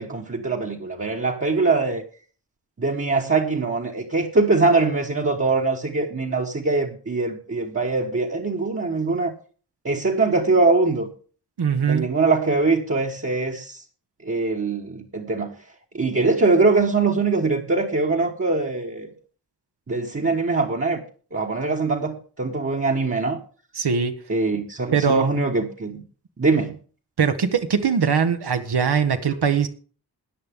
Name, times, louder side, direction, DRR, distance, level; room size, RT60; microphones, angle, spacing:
voice 1, 0.0-2.0 2.8-9.3 9.8-11.1 11.9-13.8 14.2-15.5 15.9-19.1 19.9-21.0 21.3-23.4 24.3-26.0 26.4-26.8, right 3 dB, 35° right, 1.4 m, -22 dB
voice 2, 11.6-12.0 23.8-24.1 24.9-25.3 27.2-29.7, right 6 dB, 70° right, 1.2 m, -21 dB
14.0 x 9.8 x 3.7 m
wide cardioid pair, 85°, 40 cm